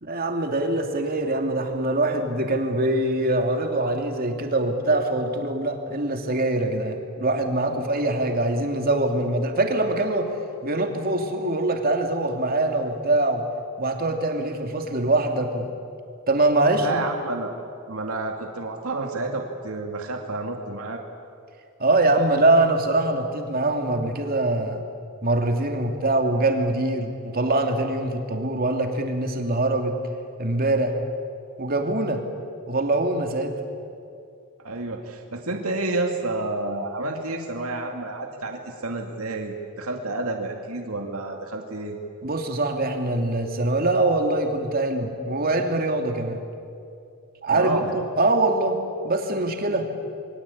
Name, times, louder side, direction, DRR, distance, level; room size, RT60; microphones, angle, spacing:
voice 1, 0.0-10.3 10.6-13.4 13.8-15.7 16.3-17.0 21.8-24.8 25.2-30.0 30.4-30.9 31.6-32.2 32.7-33.6 42.2-46.4 47.4-48.8 49.0-49.9, right 2 dB, 45° right, 4 dB, 2.8 m, -23 dB
voice 2, 16.7-17.5 17.9-21.0 34.6-42.0 47.5-47.9, right 2 dB, 75° right, 2 dB, 2.4 m, -30 dB
28.5 x 23.0 x 8.7 m, 2.5 s
head